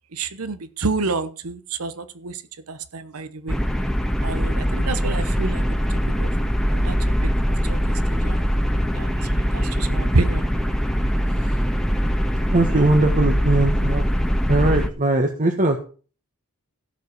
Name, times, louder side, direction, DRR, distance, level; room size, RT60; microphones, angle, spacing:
voice 1, 0.1-2.4 2.7-3.6 4.2-5.8 6.2-6.3 6.7-7.0 7.7-8.4 8.9-10.5, right 3 dB, 85° right, 11 dB, 1.0 m, -28 dB
sound 1, 3.5-14.9, equal, ahead, 1.5 m, -22 dB
voice 2, 12.5-14.1 14.5-15.8, right 2 dB, 40° right, 4 dB, 1.6 m, -20 dB
16.0 x 5.4 x 6.9 m, 0.38 s
head